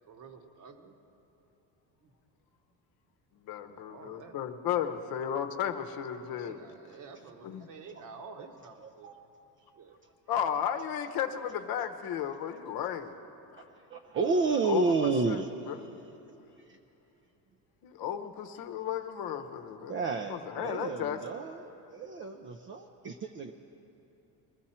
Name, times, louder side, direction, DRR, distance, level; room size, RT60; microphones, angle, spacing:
voice 1, 0.1-1.0 2.0-2.1 3.6-4.4 6.4-9.1 9.8-10.0, right 5 dB, 45° right, 5 dB, 1.1 m, -49 dB
voice 2, 3.4-6.6 7.4-7.7 10.3-13.2 13.5-13.6 14.6-15.4 15.7-15.8 17.8-20.0 20.3-21.2, left 9 dB, 55° left, 8 dB, 0.9 m, -34 dB
voice 3, 8.8-9.1 13.6-16.2 16.6-16.8 19.9-23.5, right 4 dB, 30° right, 5 dB, 0.4 m, -31 dB
21.0 x 13.5 x 4.3 m, 2.8 s
cardioid pair, 135°, 42 cm